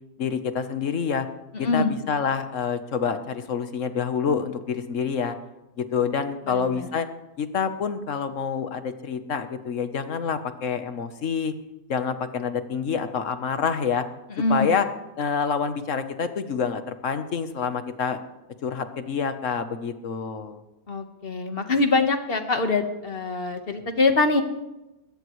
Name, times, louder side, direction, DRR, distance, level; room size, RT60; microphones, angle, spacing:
voice 1, 0.2-1.3 1.6-5.3 5.9-7.1 7.4-11.5 11.9-14.0 14.5-14.9 15.2-18.2 18.6-20.6, left 6 dB, 60° left, 9 dB, 1.3 m, -27 dB
voice 2, 6.5-6.9 14.4-14.7 20.9-24.4, left 3 dB, 40° left, 6 dB, 1.5 m, -24 dB
21.0 x 17.5 x 3.2 m, 0.99 s
omnidirectional pair, 1.5 m